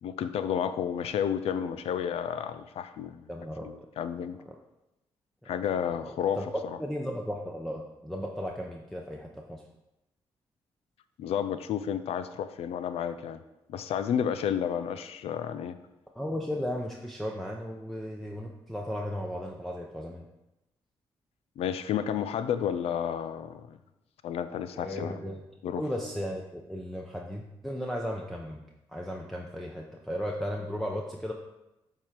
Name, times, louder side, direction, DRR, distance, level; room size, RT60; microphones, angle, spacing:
voice 1, 0.0-3.3 3.6-4.4 5.5-6.8 11.2-13.4 13.7-15.8 21.6-23.8 24.2-25.2 25.6-25.8, left 8 dB, 75° left, 12 dB, 0.4 m, -31 dB
voice 2, 3.3-3.7 5.4-5.6 6.0-6.4 6.8-9.6 16.2-20.2 24.7-25.4 25.8-28.6 28.9-31.3, equal, ahead, 0 dB, 0.8 m, -35 dB
7.7 x 3.7 x 4.5 m, 0.94 s
supercardioid pair, 60°, 10 cm